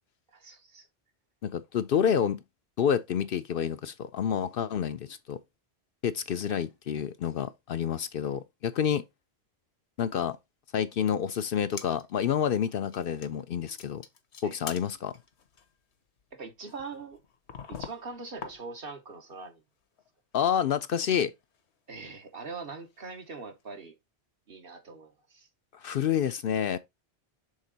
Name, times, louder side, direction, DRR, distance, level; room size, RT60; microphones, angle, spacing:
voice 1, 0.3-0.9 14.4-14.6 16.3-17.2 17.7-19.6 21.9-23.9 24.5-25.5, right 4 dB, 60° right, 1.4 m, -42 dB
voice 2, 1.4-2.4 2.8-5.4 6.0-9.0 10.0-10.4 10.7-14.0 14.4-15.1 20.3-21.3 25.8-26.8, left 8 dB, 65° left, 0.7 m, -28 dB
sound 1, 11.6-12.2 12.5-12.6 12.9-13.5 13.8-19.1 19.3-20.1 20.3-20.4 21.0-23.2 23.6-23.7, left 6 dB, 80° left, 1.2 m, -46 dB
6.6 x 3.6 x 3.9 m
omnidirectional pair, 1.1 m